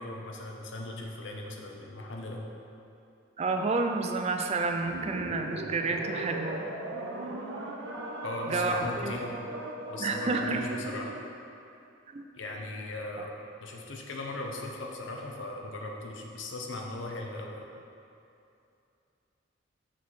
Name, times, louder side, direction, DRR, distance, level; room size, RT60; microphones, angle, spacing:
voice 1, 0.0-2.4 8.2-9.3 9.9-11.2 12.4-13.3 13.6-17.7, left 2 dB, 75° left, 0 dB, 0.8 m, -38 dB
voice 2, 3.4-6.6 8.5-9.2 10.0-10.6 12.1-12.2, right 3 dB, 35° right, 5 dB, 0.4 m, -30 dB
sound 1, 4.8-11.3, right 2 dB, 75° right, 0.8 m, -38 dB
6.2 x 4.7 x 4.1 m, 2.6 s
head